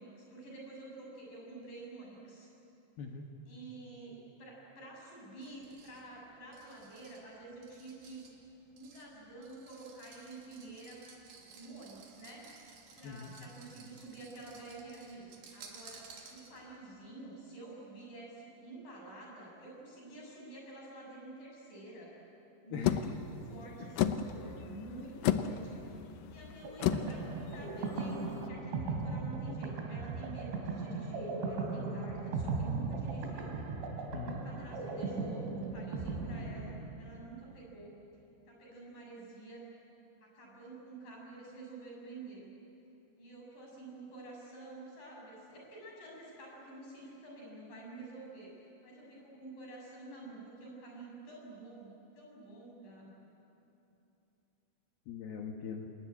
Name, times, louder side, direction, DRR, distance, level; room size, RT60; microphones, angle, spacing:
voice 1, 0.0-2.5 3.5-8.3 8.7-11.0 11.4-12.6 13.0-22.1 22.6-25.8 26.3-33.5 34.2-37.9 38.5-39.7 40.2-42.5 43.2-53.1, right 2 dB, 45° left, -2 dB, 8.1 m, -49 dB
voice 2, 3.0-3.3 13.0-13.4 22.7-23.0 34.1-34.4 55.1-55.9, left 5 dB, 65° left, 3 dB, 2.9 m, -41 dB
sound 1, 5.4-16.8, right 5 dB, 60° right, 4.4 m, -56 dB
sound 2, 22.8-28.4, left 10 dB, 85° left, 1.9 m, -34 dB
sound 3, 26.6-37.2, right 4 dB, 75° right, 4.8 m, -37 dB
28.0 x 20.0 x 10.0 m, 2.9 s
omnidirectional pair, 5.3 m